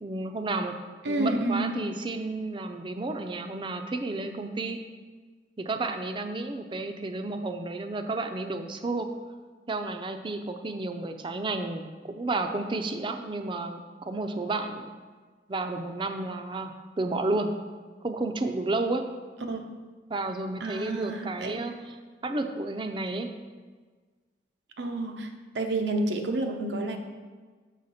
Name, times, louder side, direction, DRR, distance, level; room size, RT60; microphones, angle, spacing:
voice 1, 0.0-0.7 1.1-4.8 5.6-9.1 9.7-14.9 15.5-17.5 18.0-19.1 20.1-22.0 22.2-23.3, right 2 dB, 30° right, 6 dB, 0.5 m, -31 dB
voice 2, 1.0-1.7 19.5-19.6 20.6-21.6 24.8-25.3 25.5-27.0, right 2 dB, 90° right, 4 dB, 0.8 m, -29 dB
6.5 x 6.4 x 4.2 m, 1.4 s
head